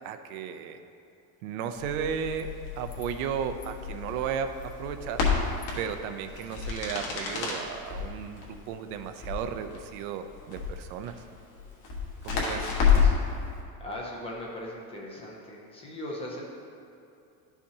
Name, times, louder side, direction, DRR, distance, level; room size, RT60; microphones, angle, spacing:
voice 1, 0.0-0.8 1.4-5.2 5.8-11.1 12.2-12.7, right 8 dB, 80° right, 8 dB, 0.7 m, -34 dB
Crackle, 1.7-13.3, left 6 dB, 45° left, 1.5 m, -30 dB
sound 1, 2.3-2.4 2.8-3.1 3.4-3.7 4.5-4.7 5.3-7.5, left 3 dB, 70° left, 1.7 m, -39 dB
voice 2, 13.8-16.4, left 1 dB, 15° left, -2 dB, 0.5 m, -39 dB
11.5 x 5.7 x 2.8 m, 2.7 s
cardioid pair, 180°, 43 cm